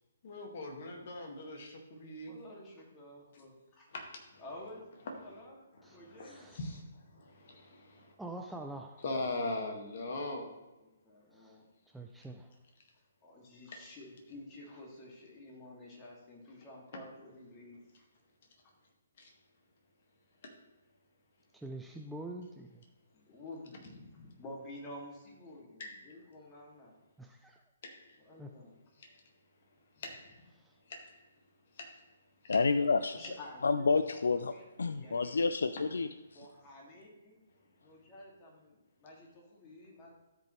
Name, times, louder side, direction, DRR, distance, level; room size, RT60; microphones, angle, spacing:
voice 1, 0.2-2.3 3.9-4.0 4.3-4.4 5.2-5.3 5.8-8.2 9.0-10.5 19.2-19.3 20.4-20.5 25.8-26.0 27.8-28.1 29.0-29.2 30.0-30.4 30.9-31.2 31.7-32.0 32.4-32.6, left 2 dB, 50° left, 2 dB, 1.9 m, -41 dB
voice 2, 2.3-3.9 4.4-6.5 10.8-11.7 13.2-18.1 23.1-26.9 28.2-28.8 33.1-34.1 34.4-35.5 36.3-37.4 37.8-40.1, left 1 dB, 25° left, -2 dB, 2.4 m, -51 dB
voice 3, 6.2-6.6 8.2-9.0 11.4-11.6 11.9-12.5 21.5-22.8 27.2-27.6 28.4-28.5, right 2 dB, 5° right, 2 dB, 0.5 m, -45 dB
voice 4, 32.5-33.2 33.6-36.1, left 4 dB, 75° left, 12 dB, 0.3 m, -29 dB
14.0 x 5.2 x 3.2 m, 1.1 s
figure-of-eight pair, 135°, 0 cm